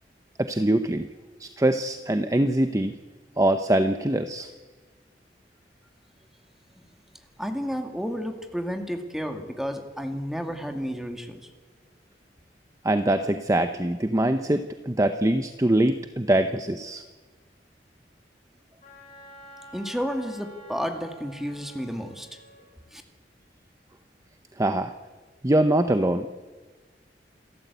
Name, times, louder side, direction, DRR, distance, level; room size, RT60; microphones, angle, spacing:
voice 1, 0.4-1.1 1.4-2.9 3.4-4.5 12.8-17.0 24.6-24.9 25.4-26.3, right 1 dB, 20° right, 9 dB, 0.7 m, -23 dB
voice 2, 7.4-11.4 19.7-22.3 22.9-23.0, equal, ahead, 5 dB, 2.1 m, -31 dB
Wind instrument woodwind instrument, 18.8-22.7, equal, 40° left, 7.6 m, -48 dB
28.0 x 13.5 x 8.2 m, 1.3 s
head